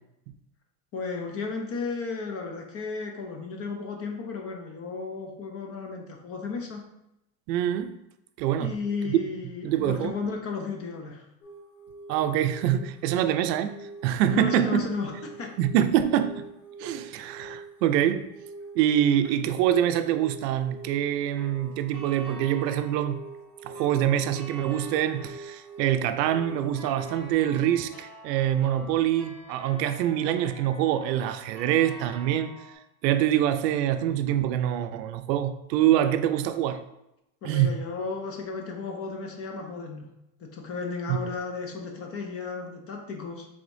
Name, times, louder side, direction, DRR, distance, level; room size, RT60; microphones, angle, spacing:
voice 1, 0.9-6.9 8.6-11.3 14.3-15.5 37.4-40.1 40.4-43.5, left 4 dB, 30° left, 0.6 m, -34 dB
voice 2, 7.5-8.0 8.4-8.7 9.0-9.2 9.6-10.1 12.1-13.7 14.0-14.9 15.6-16.5 16.8-18.2 18.8-23.2 23.6-32.5 33.0-36.8 37.4-37.7 41.1-41.2, right 11 dB, 80° right, 0.6 m, -25 dB
sound 1, 11.4-27.3, right 3 dB, 85° left, 1.5 m, -44 dB
sound 2, 21.4-32.7, right 1 dB, 5° left, 1.6 m, -47 dB
4.9 x 3.5 x 2.6 m
supercardioid pair, 130°, 50 cm